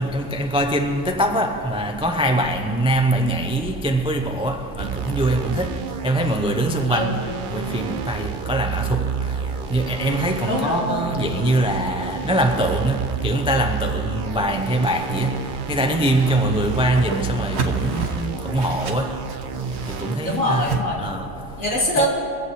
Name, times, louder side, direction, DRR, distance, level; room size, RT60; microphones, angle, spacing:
voice 1, 0.0-20.7 21.0-21.6 22.0-22.1, right 1 dB, 5° right, 0.4 m, -23 dB
sound 1, 4.8-20.2, right 7 dB, 85° right, 0.4 m, -30 dB
voice 2, 6.9-7.2 10.4-11.0 20.2-21.1 21.6-22.1, equal, 70° left, 3.2 m, -23 dB
Whoosh swoosh swish, 15.8-20.8, right 3 dB, 55° right, 1.2 m, -31 dB
23.0 x 8.1 x 4.1 m
omnidirectional pair, 1.4 m